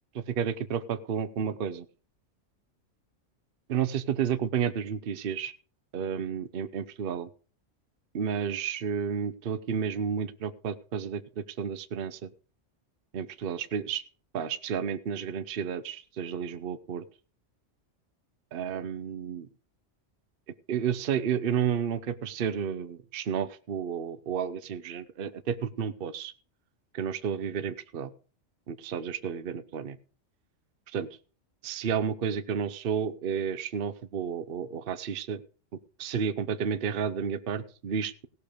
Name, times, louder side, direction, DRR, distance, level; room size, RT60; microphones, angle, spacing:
voice 1, 0.1-1.8 3.7-5.5 5.9-7.3 8.1-12.3 13.1-14.0 14.3-17.0 18.5-19.5 20.7-26.3 26.9-28.1 28.7-30.0 30.9-31.1 31.6-35.4 36.0-38.3, right 7 dB, 55° right, 13 dB, 0.9 m, -31 dB
17.0 x 6.8 x 5.0 m, 0.38 s
omnidirectional pair, 1.3 m